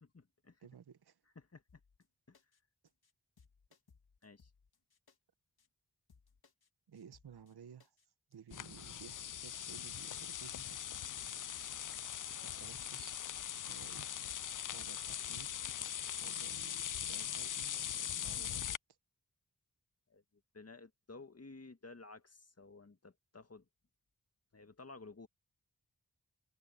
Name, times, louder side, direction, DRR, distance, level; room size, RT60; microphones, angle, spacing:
voice 1, 0.0-0.6 1.4-1.8 2.3-2.4 4.2-4.5 20.1-20.2 20.5-23.7 24.5-25.3, left 3 dB, 40° left, 1.9 m, -54 dB
voice 2, 0.6-1.2 6.9-7.9 8.3-10.8 12.3-13.2 13.7-14.1 14.7-15.6 16.2-18.8, right 7 dB, 80° right, 1.1 m, -55 dB
sound 1, 1.7-2.0 2.3-2.6 2.9-3.1 3.4-5.2 5.6-5.7 6.1-6.7 6.9-7.5 7.8-8.0 8.3-8.6 8.8-10.6 11.0-11.1 11.5-12.1 12.4-13.0 13.2-13.5 13.8-14.0 14.3-16.1 16.5-16.6 17.0-17.6, left 5 dB, 70° left, 2.2 m, -67 dB
sound 2, 8.5-18.8, left 10 dB, 55° left, 0.5 m, -41 dB
cardioid pair, 45°, 38 cm